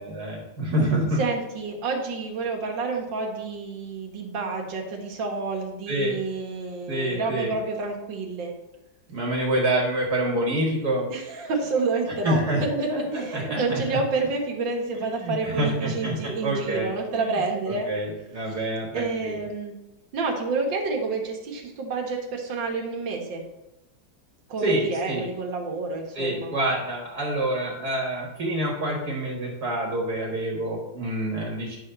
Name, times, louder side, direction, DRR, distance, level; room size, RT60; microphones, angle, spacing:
voice 1, 0.0-1.2 5.9-6.1 6.9-7.5 9.1-11.1 12.2-13.8 14.9-16.2 16.4-16.9 17.2-17.3 17.9-19.5 24.6-25.3 26.2-31.8, right 1 dB, 55° right, -2 dB, 2.1 m, -27 dB
voice 2, 1.2-8.5 11.1-17.9 18.5-18.6 18.9-19.7 20.1-23.4 24.5-26.5, right 3 dB, 70° right, 0 dB, 2.1 m, -29 dB
10.5 x 4.0 x 6.8 m, 0.92 s
omnidirectional pair, 2.1 m